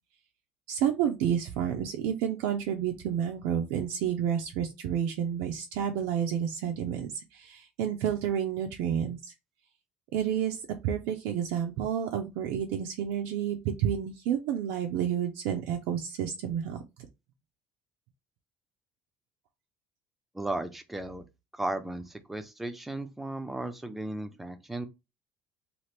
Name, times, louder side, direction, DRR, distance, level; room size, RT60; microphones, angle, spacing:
voice 1, 0.7-9.3 10.1-16.8, right 9 dB, 85° right, 0.4 m, -30 dB
voice 2, 20.3-21.2 21.5-24.9, right 1 dB, 5° right, 0.4 m, -35 dB
2.9 x 2.4 x 3.2 m
cardioid pair, 170°, 4 cm